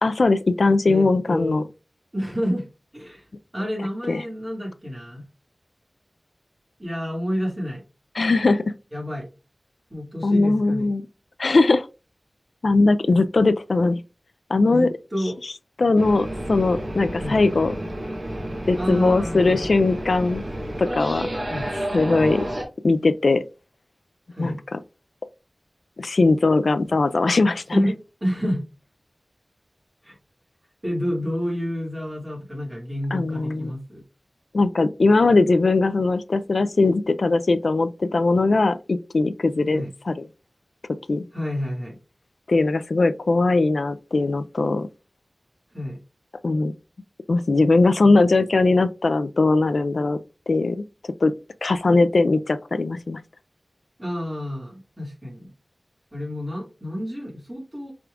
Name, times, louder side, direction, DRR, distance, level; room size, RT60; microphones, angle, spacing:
voice 1, 0.0-1.6 4.1-4.2 8.2-8.7 10.2-11.0 11.4-11.9 12.6-14.0 14.5-14.9 15.8-17.7 18.7-20.4 20.8-21.3 21.9-22.5 22.8-23.4 24.4-24.8 26.0-27.8 33.1-33.7 34.5-40.1 41.1-41.2 42.5-44.9 46.4-46.7 47.3-50.2 50.5-51.3 51.6-53.2, left 3 dB, 85° left, 0.3 m, -20 dB
voice 2, 0.9-1.6 2.1-2.7 2.9-3.3 3.5-5.2 6.8-7.8 8.9-9.3 9.9-10.9 14.7-15.4 17.2-17.4 18.7-19.6 21.5-21.8 24.3-24.6 26.9-27.0 27.7-28.7 30.0-30.2 30.8-34.0 39.7-39.9 41.3-42.0 45.7-46.0 54.0-55.5 56.1-57.9, equal, 30° right, 2.0 m, -29 dB
sound 1, 16.0-22.6, right 1 dB, 50° right, 1.8 m, -30 dB
5.9 x 3.6 x 2.4 m
wide cardioid pair, 65°, 0 cm